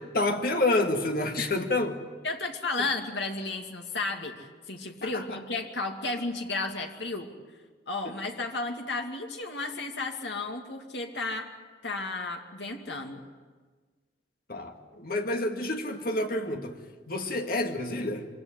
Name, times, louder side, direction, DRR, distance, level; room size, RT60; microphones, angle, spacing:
voice 1, 0.0-2.0 5.0-5.4 8.0-8.2 14.5-16.8 17.1-18.3, left 2 dB, 50° left, 4 dB, 2.1 m, -29 dB
voice 2, 2.2-7.3 7.9-11.5 11.8-13.2, left 3 dB, 70° left, 3 dB, 2.5 m, -33 dB
24.5 x 17.0 x 9.9 m, 1.4 s
head